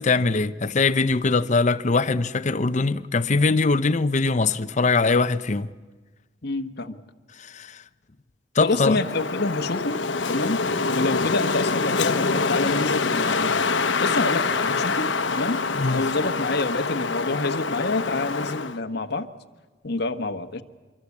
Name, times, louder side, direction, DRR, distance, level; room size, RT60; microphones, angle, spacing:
voice 1, 0.0-5.7 7.4-7.8 8.5-9.0 15.8-16.0, left 3 dB, 40° left, 0.7 m, -22 dB
voice 2, 6.4-7.0 8.6-10.0 10.3-13.7 14.0-19.3 19.8-20.6, left 2 dB, 60° left, 1.2 m, -27 dB
Wind, 8.9-18.8, left 4 dB, 75° left, 1.0 m, -25 dB
25.0 x 23.5 x 8.5 m
head